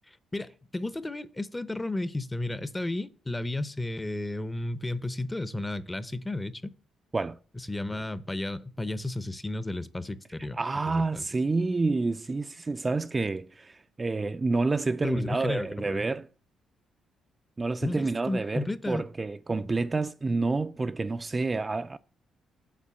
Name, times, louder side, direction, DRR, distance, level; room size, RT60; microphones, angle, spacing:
voice 1, 0.1-6.7 7.6-10.6 10.9-11.3 15.0-16.0 17.8-19.0 19.6-19.7, left 2 dB, 15° left, 0.6 m, -33 dB
voice 2, 10.4-16.3 17.6-22.0, right 3 dB, 25° right, 0.3 m, -29 dB
7.4 x 4.4 x 6.9 m
cardioid pair, 90°, 0 cm